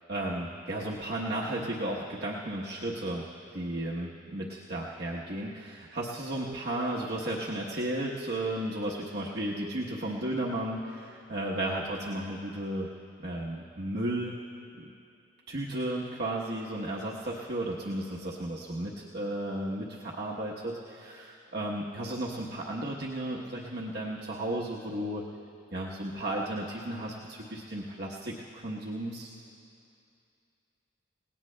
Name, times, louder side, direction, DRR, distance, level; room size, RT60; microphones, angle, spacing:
voice 1, 0.1-3.3 3.5-12.9 13.2-14.3 14.8-14.9 15.5-25.2 25.7-29.3, right 1 dB, 60° right, -4 dB, 1.0 m, -34 dB
29.0 x 18.0 x 2.2 m, 2.6 s
head